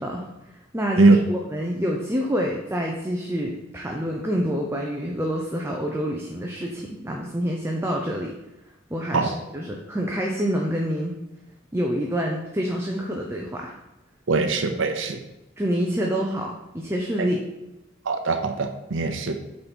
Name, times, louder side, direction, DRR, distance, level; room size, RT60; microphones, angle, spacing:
voice 1, 0.7-8.3 8.9-11.2 11.7-13.7 15.6-17.4, equal, 15° right, 0 dB, 0.7 m, -27 dB
voice 2, 14.3-15.2 18.1-19.4, right 3 dB, 75° right, 5 dB, 0.7 m, -21 dB
8.6 x 4.1 x 4.5 m, 0.98 s
head